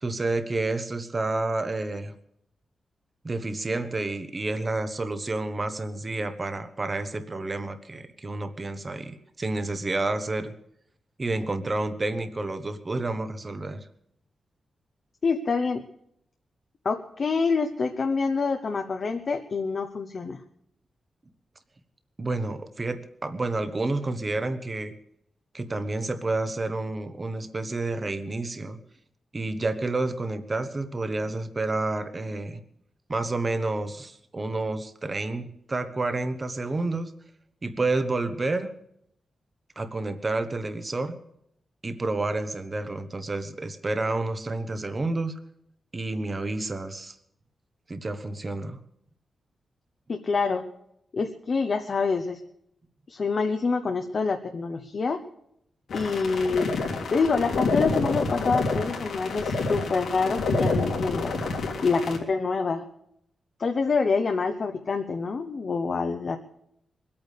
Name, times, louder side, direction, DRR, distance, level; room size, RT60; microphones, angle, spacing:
voice 1, 0.0-2.1 3.2-10.5 11.2-13.9 22.2-24.9 25.5-28.8 29.3-32.6 33.1-37.1 37.6-38.7 39.8-41.2 41.8-45.3 45.9-47.2 47.9-48.8, right 2 dB, 25° right, 10 dB, 1.2 m, -29 dB
voice 2, 15.2-15.8 16.8-20.4 50.1-50.7 51.1-52.4 53.1-55.2 55.9-56.7 57.1-61.4 61.8-62.8 63.6-66.4, left 4 dB, 45° left, 4 dB, 1.0 m, -26 dB
sound 1, 55.9-62.2, left 3 dB, 85° left, 3.1 m, -28 dB
22.5 x 8.8 x 6.7 m, 0.75 s
wide cardioid pair, 170°, 0 cm